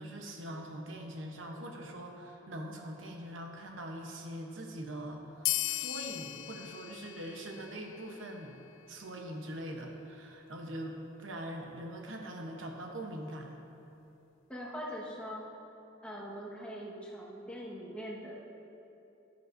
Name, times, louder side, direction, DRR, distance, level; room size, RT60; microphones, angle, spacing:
voice 1, 0.0-8.5 8.9-13.5, right 1 dB, 85° right, 2 dB, 1.0 m, -42 dB
sound 1, 5.4-8.5, left 17 dB, 75° left, 0.3 m, -37 dB
voice 2, 14.5-15.4 16.0-18.3, equal, 5° left, -6 dB, 1.4 m, -42 dB
11.5 x 10.5 x 2.6 m, 2.9 s
head